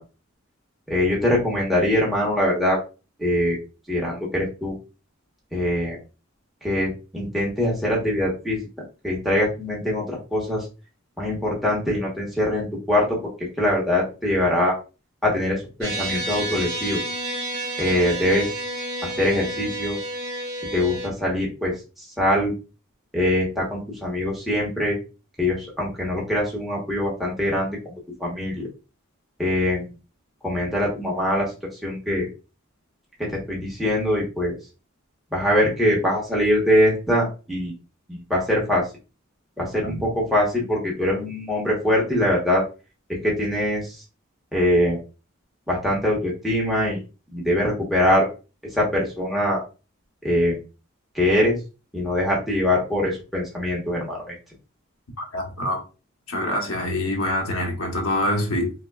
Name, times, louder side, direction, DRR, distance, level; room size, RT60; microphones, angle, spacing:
voice 1, 0.9-2.8 3.2-3.6 3.9-4.7 5.5-6.0 6.6-8.6 9.0-10.6 11.2-13.2 13.6-14.7 15.2-17.0 17.8-18.6 19.0-20.0 20.7-22.5 23.1-25.0 25.4-27.9 28.2-28.7 29.4-29.9 30.4-31.5 31.8-32.3 33.2-34.6 35.3-37.7 38.1-38.8 39.6-42.6 43.2-44.0 44.5-45.0 45.7-47.0 47.3-48.3 48.7-49.6 50.2-50.6 51.1-51.6 51.9-54.3, left 1 dB, ahead, 1.1 m, -23 dB
sound 1, 15.8-21.1, right 1 dB, 50° right, 1.5 m, -30 dB
voice 2, 55.2-55.8 56.3-58.7, left 1 dB, 90° left, 1.0 m, -25 dB
5.1 x 2.2 x 2.3 m
head